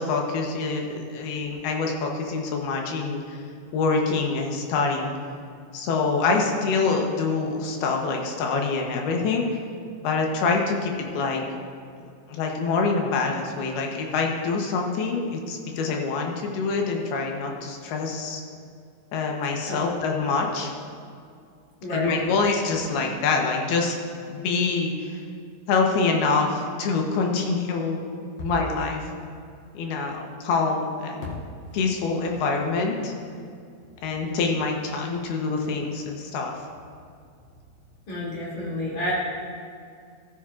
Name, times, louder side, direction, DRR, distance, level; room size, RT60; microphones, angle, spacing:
voice 1, 0.0-3.4 3.7-5.1 5.7-9.5 10.0-11.4 12.0-18.4 19.1-20.7 21.9-24.0 24.3-25.2 25.7-29.0 29.7-31.3 31.7-33.1 34.0-36.5, left 4 dB, 80° left, 1 dB, 2.9 m, -25 dB
voice 2, 21.8-22.3 38.1-39.1, left 1 dB, 50° left, -6 dB, 3.8 m, -29 dB
13.5 x 13.0 x 2.5 m, 2.4 s
omnidirectional pair, 4.6 m